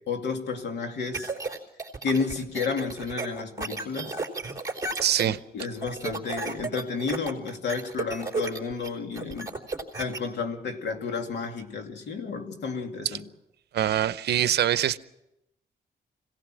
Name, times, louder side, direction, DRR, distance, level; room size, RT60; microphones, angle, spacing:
voice 1, 0.1-1.3 2.0-4.2 5.2-9.5 10.0-13.2, left 4 dB, 85° left, 4 dB, 2.7 m, -31 dB
sound 1, 1.1-10.2, right 3 dB, 20° right, 3.4 m, -33 dB
voice 2, 5.0-5.4 13.0-13.2 13.7-15.0, right 11 dB, 75° right, 14 dB, 0.8 m, -24 dB
25.5 x 17.5 x 6.2 m, 0.86 s
wide cardioid pair, 135°, 17 cm